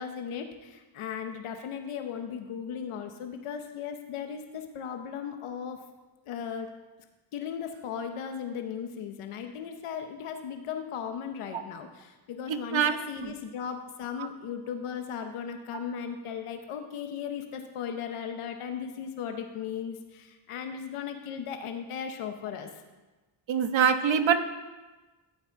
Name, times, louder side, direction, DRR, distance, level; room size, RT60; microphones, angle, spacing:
voice 1, 0.0-5.8 6.3-6.7 7.3-22.7, left 7 dB, 90° left, 6 dB, 1.1 m, -37 dB
voice 2, 12.5-12.9 13.2-13.3 23.5-24.4, right 7 dB, 65° right, 8 dB, 1.2 m, -24 dB
14.0 x 8.3 x 4.7 m, 1.2 s
cardioid pair, 80°, 49 cm